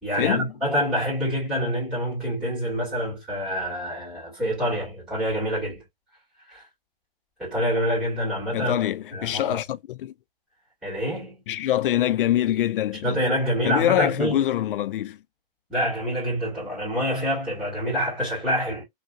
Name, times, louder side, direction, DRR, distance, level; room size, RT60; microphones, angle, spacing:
voice 1, 0.0-5.8 6.5-6.7 7.4-8.8 9.1-9.6 10.8-11.4 13.0-14.5 15.7-18.8, equal, ahead, 2.0 m, -26 dB
voice 2, 8.5-10.1 11.5-13.2 13.6-15.2, left 12 dB, 65° left, 0.5 m, -24 dB
3.2 x 2.7 x 2.5 m
hypercardioid pair, 165°, 29 cm